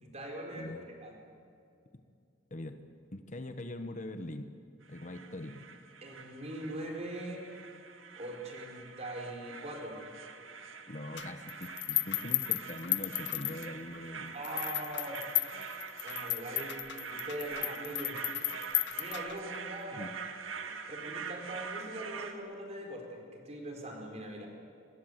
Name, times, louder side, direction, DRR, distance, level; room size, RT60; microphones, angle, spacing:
voice 1, 0.0-0.7 1.0-1.1 6.0-7.5 8.2-10.0 14.3-15.2 16.0-16.8 17.1-18.2 19.0-20.1 20.9-24.5, right 1 dB, 35° right, 2 dB, 4.4 m, -41 dB
voice 2, 0.5-0.9 2.5-2.8 3.1-4.5 4.9-5.6 10.9-14.3 19.9-20.1, left 1 dB, 40° left, 8 dB, 1.1 m, -42 dB
sound 1, 4.8-22.3, right 5 dB, 85° right, 2.0 m, -44 dB
sound 2, 11.2-14.0 14.4-19.6, left 17 dB, 60° left, 0.6 m, -35 dB
24.5 x 21.0 x 8.0 m, 2.4 s
head